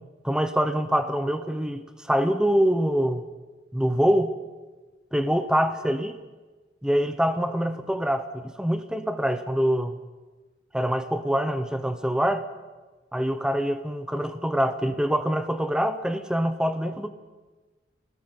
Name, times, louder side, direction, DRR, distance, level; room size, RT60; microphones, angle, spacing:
voice 1, 0.2-3.2 3.7-4.3 5.1-6.2 6.8-10.0 10.7-12.4 13.1-17.1, equal, 5° right, 10 dB, 1.0 m, -25 dB
23.5 x 18.5 x 7.9 m, 1.3 s
head